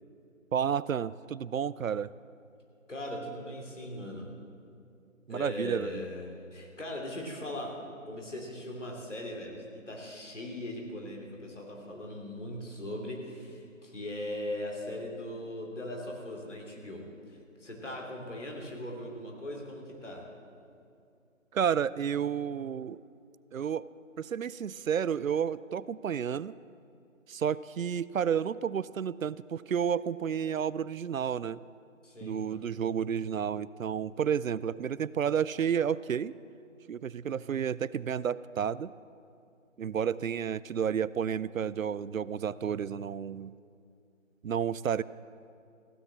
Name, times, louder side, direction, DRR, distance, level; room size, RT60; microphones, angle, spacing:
voice 1, 0.5-2.1 5.3-6.1 21.5-23.0 23.5-23.9 24.2-26.5 27.3-31.6 32.2-36.3 36.9-38.9 39.8-43.5 44.4-45.0, right 8 dB, 75° right, 19 dB, 0.5 m, -31 dB
voice 2, 2.9-4.3 5.3-7.8 8.0-20.2 32.0-32.6, left 1 dB, 60° left, 0 dB, 3.3 m, -39 dB
15.5 x 10.0 x 7.2 m, 2.5 s
figure-of-eight pair, 175°, 40 cm